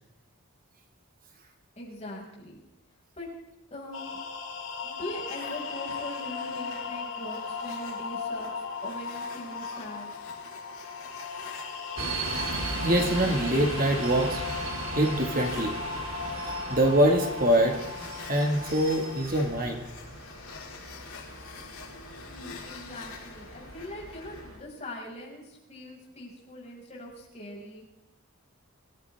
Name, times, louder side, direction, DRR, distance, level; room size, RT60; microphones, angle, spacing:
voice 1, 1.8-2.6 3.1-3.3 3.7-4.2 4.8-10.1 22.3-27.8, left 1 dB, 30° left, -3 dB, 5.9 m, -41 dB
sound 1, 3.9-19.2, left 4 dB, 65° left, 4.7 m, -37 dB
sound 2, 5.3-24.6, left 5 dB, 80° left, 4.0 m, -47 dB
sound 3, 12.0-24.6, right 3 dB, 75° right, 2.8 m, -38 dB
voice 2, 12.8-14.4 14.9-15.7 16.7-17.8 18.2-19.8, right 1 dB, 40° right, 3 dB, 2.0 m, -24 dB
25.0 x 15.0 x 3.6 m, 0.93 s
head